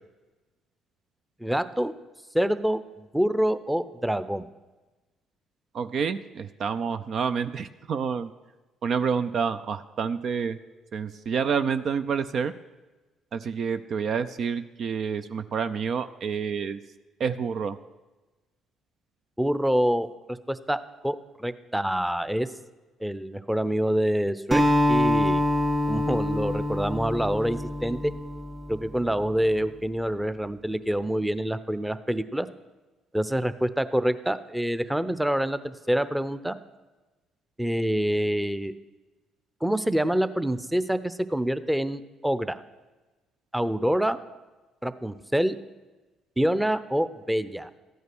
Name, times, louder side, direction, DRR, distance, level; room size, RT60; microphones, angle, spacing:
voice 1, 1.4-1.9 2.3-4.5 19.4-20.1 20.5-22.5 23.0-25.4 25.9-28.1 28.7-32.5 33.1-36.6 37.6-38.7 39.6-42.6 43.5-44.2 44.8-45.5 46.4-47.7, equal, 5° right, 13 dB, 0.8 m, -26 dB
voice 2, 5.7-8.3 8.8-10.6 10.9-12.5 13.3-16.8 17.2-17.8, right 6 dB, 55° right, 11 dB, 0.5 m, -28 dB
Acoustic guitar, 24.5-29.0, left 1 dB, 25° right, 2.7 m, -25 dB
14.0 x 9.4 x 6.1 m, 1.2 s
hypercardioid pair, 50°, 0 cm